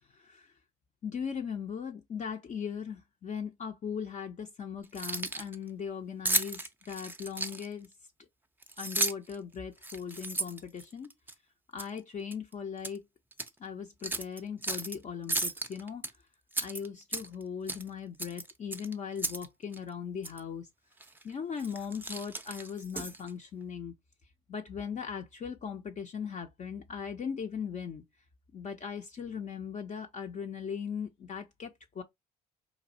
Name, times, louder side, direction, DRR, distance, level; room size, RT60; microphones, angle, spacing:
voice 1, 0.1-0.5 1.0-7.9 8.8-11.1 11.7-13.0 13.6-16.1 16.6-20.7 21.2-23.9 24.5-28.0 28.5-32.0, left 7 dB, 40° left, 0.5 m, -39 dB
Keys jangling, 4.8-5.5 6.2-7.8 8.6-9.3 9.8-11.3 11.8-12.0 12.3-13.0 13.3-13.5 14.0-14.9 15.3-16.1 16.5-17.4 17.7-17.9 18.2-19.5 19.7-19.8 20.2-20.4 21.0-21.2 21.6-23.3, right 2 dB, 10° right, 0.5 m, -34 dB
4.0 x 2.6 x 2.5 m
hypercardioid pair, 45°, 20 cm